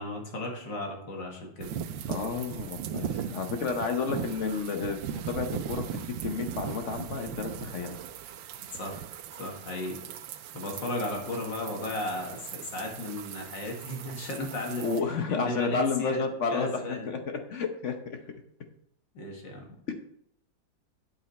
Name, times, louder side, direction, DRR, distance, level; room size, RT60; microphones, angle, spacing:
voice 1, 0.0-1.7 8.8-9.0 9.4-10.0 10.5-14.9 15.3-16.3 16.5-17.1 19.1-19.8, left 2 dB, 75° left, 1 dB, 2.5 m, -35 dB
sound 1, 1.6-15.0, right 9 dB, 90° right, 1.4 m, -39 dB
voice 2, 2.1-8.0 14.8-17.2 17.5-18.2 19.9-20.0, left 4 dB, 55° left, 6 dB, 0.9 m, -31 dB
8.2 x 7.8 x 4.2 m, 0.72 s
omnidirectional pair, 2.0 m